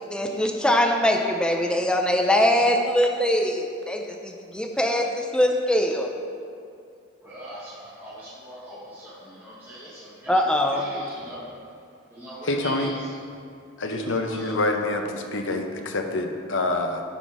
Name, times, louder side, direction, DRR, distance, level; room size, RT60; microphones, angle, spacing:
voice 1, 0.1-6.1 10.3-10.9, left 1 dB, 5° left, 2 dB, 0.5 m, -22 dB
voice 2, 7.2-11.5 12.1-13.1 13.8-14.6, right 1 dB, 10° right, -11 dB, 1.4 m, -41 dB
voice 3, 12.4-12.9 13.8-17.0, left 2 dB, 60° left, 4 dB, 0.7 m, -26 dB
10.0 x 4.2 x 4.8 m, 2.4 s
head